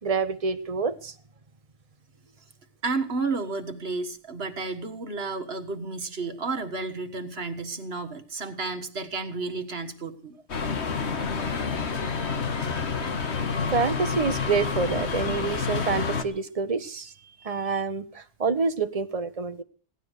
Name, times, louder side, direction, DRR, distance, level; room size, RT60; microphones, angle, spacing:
voice 1, 0.0-1.1 13.2-17.1 17.4-19.6, right 4 dB, 35° right, 10 dB, 1.1 m, -27 dB
voice 2, 2.8-10.4 17.3-17.7, right 3 dB, 60° right, 7 dB, 1.8 m, -32 dB
sound 1, 10.5-16.2, left 5 dB, 75° left, 1.6 m, -28 dB
17.0 x 12.0 x 6.5 m, 0.42 s
omnidirectional pair, 1.2 m